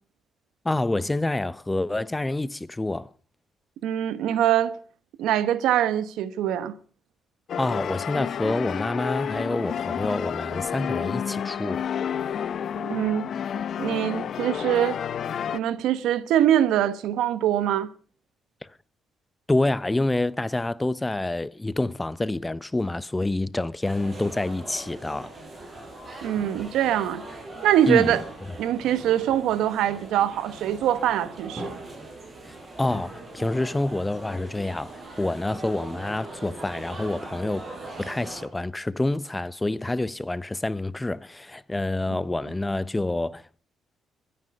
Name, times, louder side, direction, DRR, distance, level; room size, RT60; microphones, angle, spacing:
voice 1, 0.6-3.1 7.6-11.9 19.5-25.3 27.9-28.1 32.5-37.7 38.0-43.6, left 2 dB, 15° left, 0.7 m, -27 dB
voice 2, 3.8-4.8 5.2-6.7 12.8-13.3 13.8-15.0 15.5-17.9 26.2-27.2 27.6-28.2 28.6-31.7 42.1-42.2, right 11 dB, 85° right, 1.2 m, -23 dB
sound 1, 7.5-15.6, left 8 dB, 60° left, 0.8 m, -30 dB
sound 2, 23.8-38.5, right 2 dB, 35° right, 6.1 m, -40 dB
23.0 x 10.0 x 5.4 m
cardioid pair, 90°, 0 cm